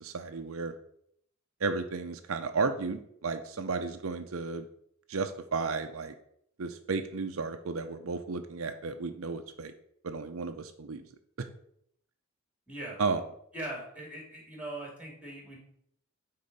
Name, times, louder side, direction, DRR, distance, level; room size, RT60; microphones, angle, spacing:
voice 1, 0.0-0.7 1.6-4.6 5.1-6.1 6.6-9.7 10.0-11.0 13.0-13.2, right 4 dB, 75° right, 7 dB, 0.6 m, -33 dB
voice 2, 12.7-13.0 13.5-15.6, right 1 dB, 5° right, -1 dB, 2.6 m, -40 dB
9.7 x 3.8 x 5.3 m, 0.70 s
head